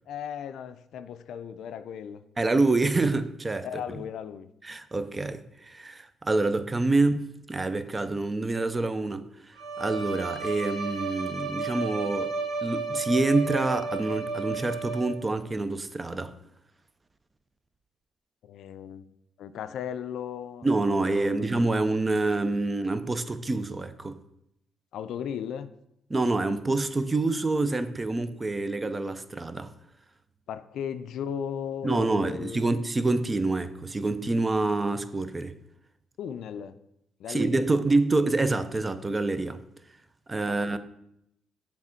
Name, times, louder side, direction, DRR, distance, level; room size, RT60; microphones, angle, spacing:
voice 1, 0.1-2.2 3.6-4.5 18.4-19.0 19.4-21.5 24.9-25.7 30.5-32.6 36.2-36.8 37.2-37.8 40.4-40.8, left 8 dB, 75° left, 0.4 m, -36 dB
voice 2, 2.4-3.7 4.6-12.3 12.6-16.3 20.6-24.2 26.1-29.7 31.8-35.5 37.3-39.6 40.3-40.8, right 2 dB, 25° right, 0.5 m, -27 dB
Bowed string instrument, 9.5-15.4, right 4 dB, 85° right, 1.7 m, -33 dB
7.3 x 3.5 x 4.4 m
cardioid pair, 90°, 0 cm